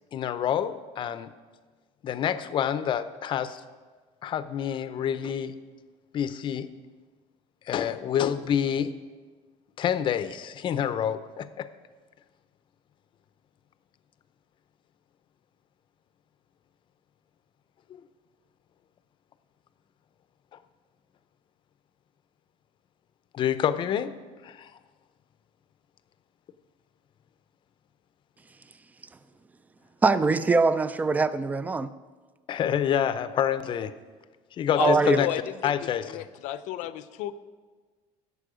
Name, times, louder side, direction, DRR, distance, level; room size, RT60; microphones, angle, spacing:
voice 1, 0.1-1.3 2.0-3.6 4.2-5.5 6.1-6.7 7.7-8.9 9.8-11.7 17.9-18.0 23.3-24.1 24.4-24.7 32.5-33.9 34.6-35.3 35.6-36.2, left 9 dB, 40° left, 0.6 m, -27 dB
voice 2, 30.0-31.9 34.8-35.2, right 4 dB, 10° right, 0.3 m, -23 dB
voice 3, 34.8-35.7 36.1-37.3, left 12 dB, 80° left, 0.6 m, -31 dB
15.5 x 6.9 x 5.0 m
cardioid pair, 150°, 13 cm